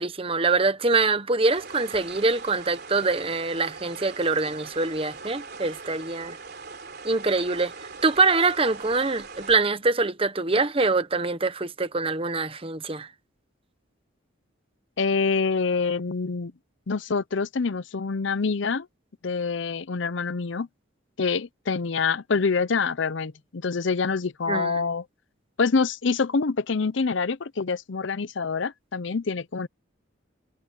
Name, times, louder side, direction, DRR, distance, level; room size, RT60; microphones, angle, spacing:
voice 1, 0.0-6.4 7.0-7.7 8.0-13.1 24.5-24.8, right 3 dB, 25° right, 1.0 m, -24 dB
sound 1, 1.5-9.5, right 4 dB, 55° right, 3.5 m, -41 dB
voice 2, 15.0-16.5 16.9-18.9 19.2-20.7 21.2-25.0 25.6-29.7, left 4 dB, 65° left, 0.6 m, -26 dB
head